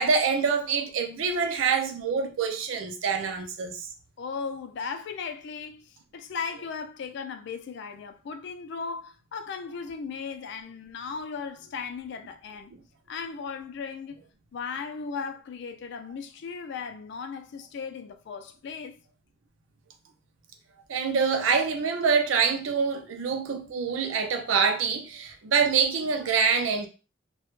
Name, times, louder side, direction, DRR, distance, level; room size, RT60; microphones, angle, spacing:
voice 1, 0.0-3.9 20.9-26.9, right 5 dB, 75° right, 0.5 m, -25 dB
voice 2, 4.2-12.7 13.1-14.3 14.5-19.0, left 5 dB, 60° left, 0.3 m, -37 dB
2.2 x 2.0 x 3.0 m
head